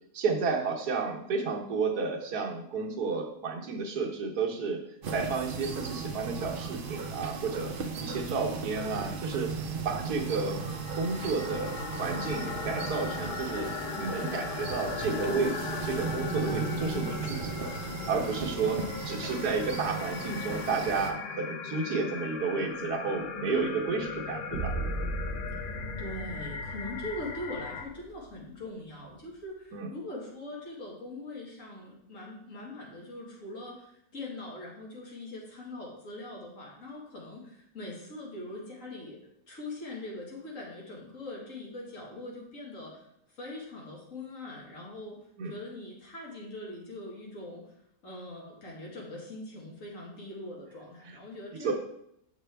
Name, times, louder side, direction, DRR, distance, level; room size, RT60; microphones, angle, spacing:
voice 1, 0.1-4.8 5.1-7.7 8.0-9.5 9.8-10.6 10.9-17.7 18.1-24.7 29.7-29.9 45.4-45.5 51.1-51.2 51.5-51.7, right 4 dB, 80° right, 1 dB, 1.5 m, -31 dB
sound 1, 5.0-21.1, right 4 dB, 55° right, 0.6 m, -36 dB
sound 2, 10.0-27.9, left 6 dB, 90° left, 0.4 m, -39 dB
sound 3, 24.5-28.5, right 2 dB, 15° left, 2.0 m, -37 dB
voice 2, 26.0-39.2 39.5-47.7 48.0-51.7, left 1 dB, 55° left, -3 dB, 2.2 m, -42 dB
6.8 x 6.2 x 3.4 m, 0.75 s
omnidirectional pair, 1.7 m